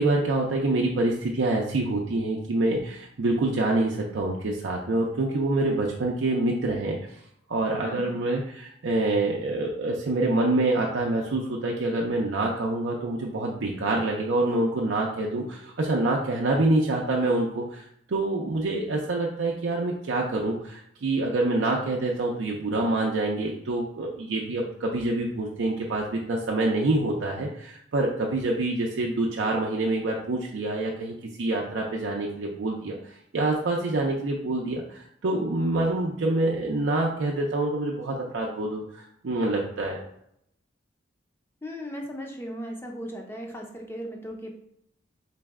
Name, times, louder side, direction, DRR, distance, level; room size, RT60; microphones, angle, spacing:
voice 1, 0.0-7.0 7.5-40.0, right 2 dB, 80° right, -2 dB, 0.5 m, -26 dB
voice 2, 7.8-8.2 41.6-44.5, equal, 15° left, 1 dB, 0.5 m, -37 dB
4.0 x 2.1 x 3.5 m, 0.73 s
head